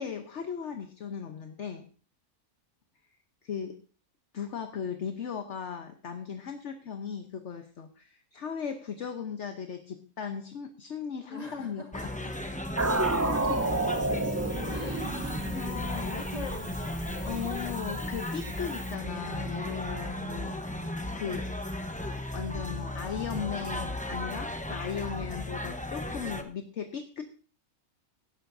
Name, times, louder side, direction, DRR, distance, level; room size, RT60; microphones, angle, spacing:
voice 1, 0.0-1.9 3.4-3.8 4.3-12.1 13.3-13.8 14.7-14.9 15.5-16.3 17.2-20.5 21.1-21.5 22.3-27.2, left 7 dB, 55° left, 6 dB, 1.2 m, -37 dB
voice 2, 11.3-12.1 14.7-17.8 19.9-20.9, left 2 dB, 25° left, 0 dB, 2.3 m, -45 dB
sound 1, 11.9-26.4, left 1 dB, 5° left, 0.7 m, -35 dB
sound 2, 12.8-18.9, right 2 dB, 25° right, 0.3 m, -32 dB
17.5 x 10.5 x 2.7 m, 0.37 s
omnidirectional pair, 1.5 m